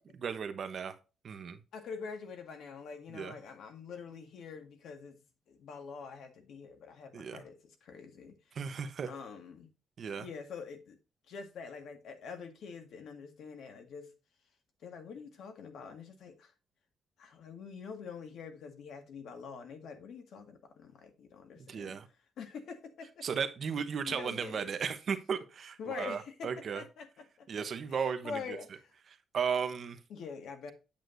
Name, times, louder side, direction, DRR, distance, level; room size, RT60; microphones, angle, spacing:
voice 1, 0.1-1.0 1.2-1.6 3.1-3.3 7.1-7.4 8.5-9.1 10.0-10.3 21.7-22.1 23.2-26.8 27.5-28.6 29.3-30.0, right 6 dB, 45° right, 1.0 m, -35 dB
voice 2, 1.7-5.2 5.5-8.6 9.0-9.7 10.2-11.0 11.3-14.1 14.8-16.5 17.2-22.0 22.4-23.3 24.0-24.7 25.8-27.6 27.9-28.9 30.1-30.7, left 5 dB, 65° left, 1.8 m, -45 dB
8.7 x 7.8 x 2.6 m
cardioid pair, 170°, 0 cm